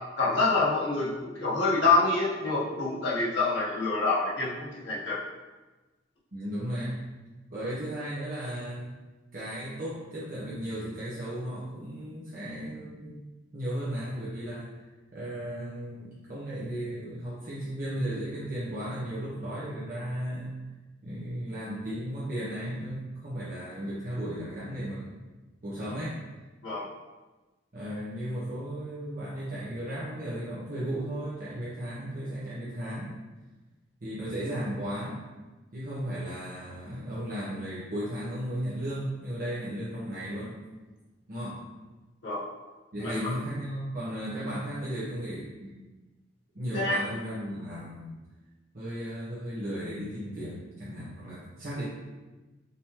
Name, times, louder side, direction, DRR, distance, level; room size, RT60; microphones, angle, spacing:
voice 1, 0.2-1.1 1.3-5.2 26.6-26.9 42.2-42.4 43.0-43.3 46.7-47.0, left 3 dB, 75° left, -7 dB, 1.2 m, -26 dB
voice 2, 6.3-7.0 7.5-8.9 9.3-13.2 13.5-14.7 15.1-20.5 21.0-25.1 25.6-26.2 27.7-33.1 34.0-35.2 35.7-40.6 41.3-41.6 42.9-45.7 46.5-48.2 48.7-51.8, equal, 45° right, -10 dB, 1.0 m, -35 dB
5.3 x 3.0 x 3.0 m, 1.2 s
head